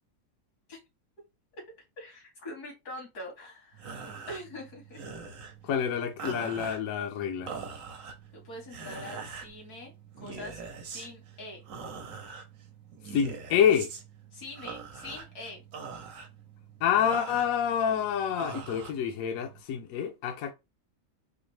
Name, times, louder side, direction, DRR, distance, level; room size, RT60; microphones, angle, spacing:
voice 1, 2.0-4.0 4.3-5.1 8.3-11.6 14.3-15.6, left 1 dB, 85° left, 2.3 m, -44 dB
sound 1, 3.7-19.6, right 5 dB, 60° right, 1.1 m, -43 dB
voice 2, 5.6-7.5 13.1-13.9 16.8-20.5, left 8 dB, 70° left, 1.0 m, -27 dB
4.2 x 2.5 x 3.2 m
omnidirectional pair, 1.6 m